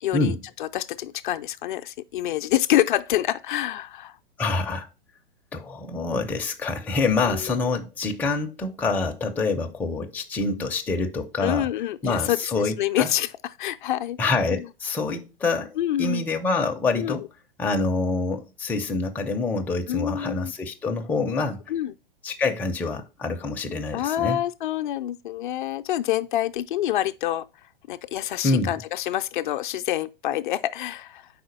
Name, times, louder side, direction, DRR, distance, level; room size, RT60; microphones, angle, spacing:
voice 1, 0.0-4.1 7.3-7.7 11.4-12.4 12.8-13.3 13.6-14.2 14.5-14.6 15.8-16.2 17.0-17.2 19.9-20.5 21.7-21.9 23.9-27.5 27.9-31.3, left 13 dB, 55° left, 0.5 m, -27 dB
voice 2, 4.4-4.9 5.5-11.7 12.0-13.1 14.2-17.3 17.6-21.6 22.2-24.4 28.4-28.7, left 3 dB, 5° left, 0.4 m, -26 dB
4.9 x 3.8 x 5.0 m
hypercardioid pair, 110°, 29 cm